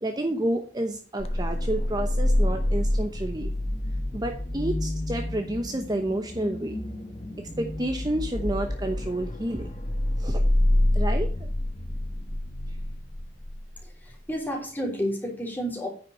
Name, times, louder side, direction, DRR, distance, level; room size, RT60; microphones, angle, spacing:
voice 1, 0.0-3.5 4.1-6.8 7.4-9.7 10.2-10.4 10.9-11.5, right 1 dB, 20° right, 5 dB, 0.8 m, -30 dB
sound 1, 1.2-13.8, left 1 dB, 35° left, 1.2 m, -27 dB
voice 2, 13.8-15.9, equal, 10° left, -1 dB, 3.4 m, -31 dB
9.7 x 5.9 x 5.8 m, 0.41 s
head